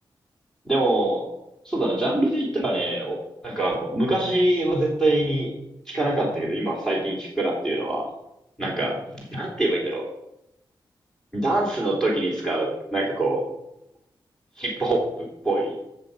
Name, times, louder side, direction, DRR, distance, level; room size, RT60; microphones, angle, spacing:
voice 1, 0.6-1.3 1.6-5.5 5.9-8.1 8.6-10.1 11.3-13.4 14.6-15.7, right 1 dB, 5° left, -3 dB, 3.1 m, -24 dB
15.0 x 7.2 x 5.3 m, 0.85 s
wide cardioid pair, 145°, 8 cm